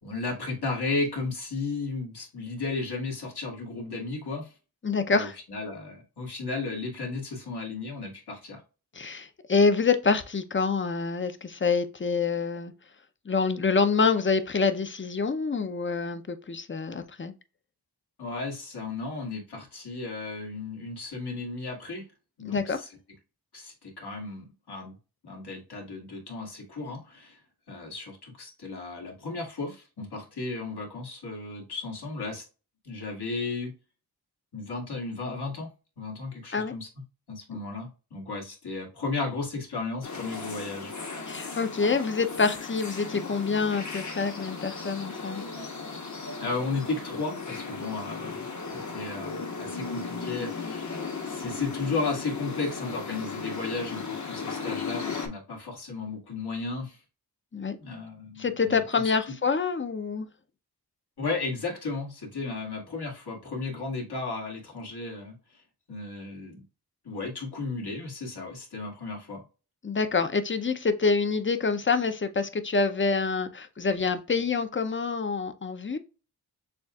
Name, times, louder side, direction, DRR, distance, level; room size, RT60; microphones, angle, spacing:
voice 1, 0.0-4.5 5.1-8.6 18.2-22.0 22.4-22.9 23.5-24.9 25.2-27.4 27.7-32.4 32.8-33.7 34.5-35.7 36.0-36.9 37.3-40.9 46.4-48.4 48.7-50.9 51.3-57.0 57.8-58.8 61.2-65.6 65.9-66.6 67.0-69.4, left 3 dB, 70° left, 2.0 m, -34 dB
voice 2, 4.8-5.4 8.9-12.7 13.3-17.3 22.4-22.8 36.5-36.7 41.3-45.4 57.5-57.8 58.4-60.3 69.8-76.0, left 4 dB, 30° left, 0.6 m, -26 dB
sound 1, 40.0-55.3, left 4 dB, 45° left, 1.1 m, -36 dB
6.9 x 2.4 x 2.3 m
wide cardioid pair, 75°, 40 cm